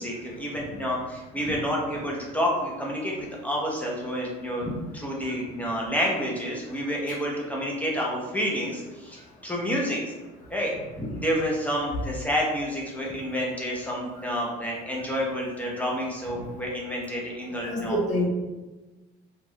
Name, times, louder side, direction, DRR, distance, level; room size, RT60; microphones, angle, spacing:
voice 1, 0.0-10.0 10.5-18.0, equal, 10° left, -3 dB, 0.6 m, -29 dB
voice 2, 17.6-18.2, left 1 dB, 45° left, -4 dB, 1.0 m, -26 dB
3.0 x 2.4 x 2.7 m, 1.1 s
cardioid pair, 110°, 18 cm